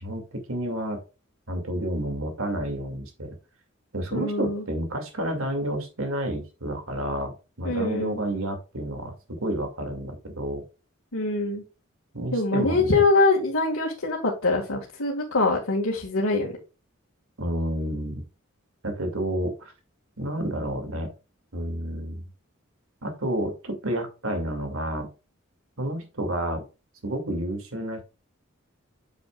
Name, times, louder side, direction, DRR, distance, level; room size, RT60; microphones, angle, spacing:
voice 1, 0.0-1.0 1.5-3.4 3.9-10.6 12.1-13.0 17.4-18.2 18.8-19.7 20.2-21.1 21.5-22.2 23.0-25.1 25.8-26.6 27.0-28.0, right 1 dB, 75° right, 5 dB, 2.3 m, -30 dB
voice 2, 4.1-4.6 7.6-8.2 11.1-11.6 12.3-16.6, left 3 dB, 85° left, -3 dB, 1.9 m, -24 dB
8.8 x 6.9 x 2.4 m, 0.30 s
head